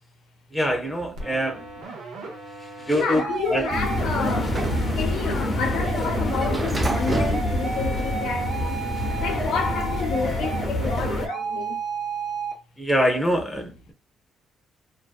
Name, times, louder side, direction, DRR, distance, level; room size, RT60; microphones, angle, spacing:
voice 1, 0.5-1.6 2.6-3.2 3.5-3.7 12.8-13.9, equal, 5° left, 0.7 m, -24 dB
sound 1, 1.2-12.5, right 4 dB, 90° right, 0.7 m, -33 dB
voice 2, 2.9-4.7 4.9-8.8 9.2-11.8, left 5 dB, 85° left, 0.7 m, -30 dB
Sliding door, 3.3-8.5, right 2 dB, 25° right, 0.4 m, -31 dB
sound 2, 3.7-11.3, left 2 dB, 45° left, 0.6 m, -27 dB
2.5 x 2.2 x 2.3 m
cardioid pair, 90°, 0 cm